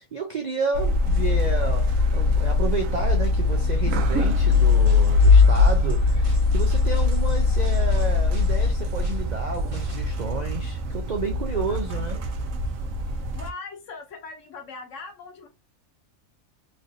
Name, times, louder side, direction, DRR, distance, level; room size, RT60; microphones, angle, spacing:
voice 1, 0.0-12.2, right 4 dB, 60° right, 0.4 m, -31 dB
sound 1, 0.7-13.5, left 3 dB, 80° right, 1.0 m, -21 dB
sound 2, 4.5-10.1, right 1 dB, 30° right, 0.8 m, -46 dB
voice 2, 11.5-12.2 13.0-15.5, left 4 dB, 70° left, 1.1 m, -41 dB
3.2 x 2.6 x 2.7 m
omnidirectional pair, 1.4 m